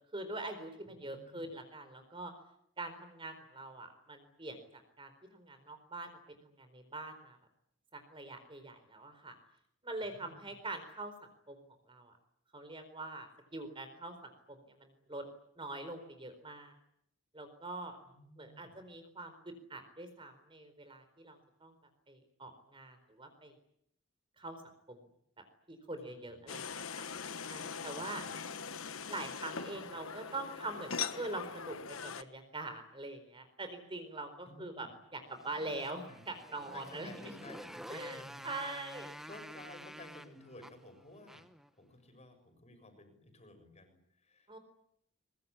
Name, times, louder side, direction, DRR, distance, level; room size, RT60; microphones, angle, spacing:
voice 1, 0.1-2.3 2.8-6.2 6.4-7.4 7.9-9.4 9.8-11.1 11.5-11.6 11.9-12.1 12.5-15.2 15.6-16.7 17.3-18.0 18.4-21.7 22.1-23.5 24.4-24.6 24.9-25.0 25.7-27.0 27.5-28.2 29.1-31.8 32.0-37.1 37.9-38.2 38.4-39.2 44.5-44.6, right 2 dB, 25° right, 9 dB, 4.3 m, -44 dB
voice 2, 1.0-1.5 10.0-10.6 18.1-18.8 26.0-26.4 28.0-28.3 34.4-34.9 36.0-36.3 36.7-38.5 39.2-41.5 41.8-44.6, left 1 dB, 30° left, 8 dB, 6.7 m, -54 dB
sound 1, 26.5-32.2, left 6 dB, 70° left, 1.3 m, -41 dB
Motorcycle, 35.4-41.7, equal, ahead, 1.2 m, -50 dB
23.5 x 23.0 x 9.9 m, 0.71 s
head